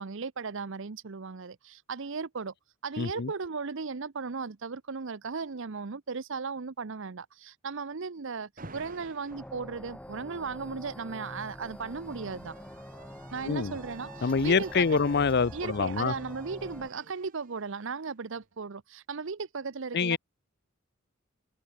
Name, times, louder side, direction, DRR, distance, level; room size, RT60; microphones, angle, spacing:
voice 1, 0.0-2.5 2.8-12.6 13.3-15.0 15.5-20.2, right 5 dB, 65° right, 0.8 m, -36 dB
voice 2, 3.0-3.3 13.4-13.8 14.2-16.1 19.9-20.2, left 5 dB, 50° left, 0.6 m, -26 dB
Alarm, 8.6-9.5 10.8-18.5, right 4 dB, 40° right, 2.8 m, -52 dB
sound 1, 9.3-16.9, equal, 5° left, 1.2 m, -45 dB
head